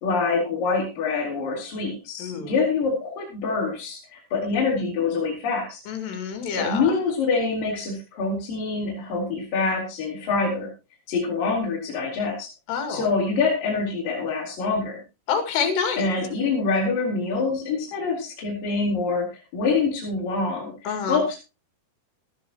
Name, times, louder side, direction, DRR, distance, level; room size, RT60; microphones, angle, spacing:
voice 1, 0.0-5.8 6.6-10.7 11.1-12.5 12.9-15.0 16.0-21.4, left 4 dB, 55° left, -4 dB, 5.2 m, -25 dB
voice 2, 2.2-2.5 5.9-6.9 12.7-13.0 15.3-16.1 20.9-21.2, left 6 dB, 75° left, 7 dB, 4.3 m, -27 dB
16.0 x 13.0 x 3.0 m, 0.28 s
omnidirectional pair, 4.9 m